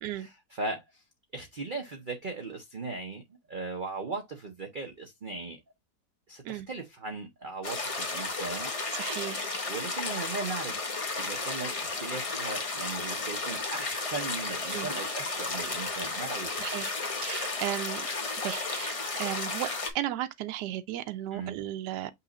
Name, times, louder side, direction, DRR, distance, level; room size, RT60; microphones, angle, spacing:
voice 1, 0.2-1.0 1.3-3.2 3.5-5.6 6.3-8.7 9.7-10.9 11.2-16.6 21.3-21.6, right 3 dB, 45° right, 0.7 m, -38 dB
sound 1, 7.6-19.9, left 3 dB, 35° left, 0.5 m, -33 dB
voice 2, 8.9-9.4 14.7-14.9 16.6-16.9 17.2-18.1 18.4-19.7 19.9-22.1, right 13 dB, 85° right, 1.2 m, -35 dB
5.7 x 2.4 x 3.9 m
omnidirectional pair, 1.8 m